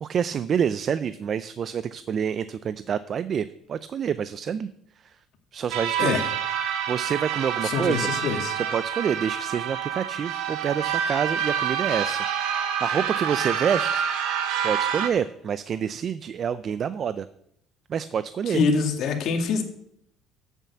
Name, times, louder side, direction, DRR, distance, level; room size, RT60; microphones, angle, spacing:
voice 1, 0.0-4.7 5.0-5.2 5.5-6.2 6.9-8.1 8.6-14.1 14.6-17.3 17.9-18.6, right 8 dB, 45° right, 15 dB, 0.4 m, -27 dB
sound 1, 5.7-15.1, right 8 dB, 75° right, 1.2 m, -27 dB
voice 2, 7.6-8.6 18.5-19.6, left 5 dB, 60° left, 4 dB, 2.0 m, -25 dB
8.2 x 7.3 x 8.3 m, 0.73 s
cardioid pair, 100°, 0 cm